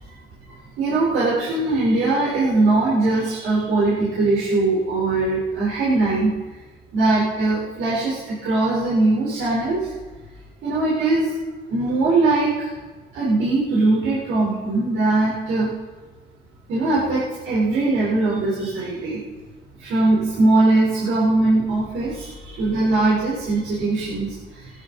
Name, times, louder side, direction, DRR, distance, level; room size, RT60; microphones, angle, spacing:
voice 1, 0.8-6.3 6.9-9.9 10.6-11.3 11.7-12.7 13.1-15.7 16.7-19.2 19.8-24.7, right 2 dB, 85° right, -7 dB, 4.3 m, -21 dB
18.5 x 13.5 x 4.1 m, 1.3 s
cardioid pair, 90°, 20 cm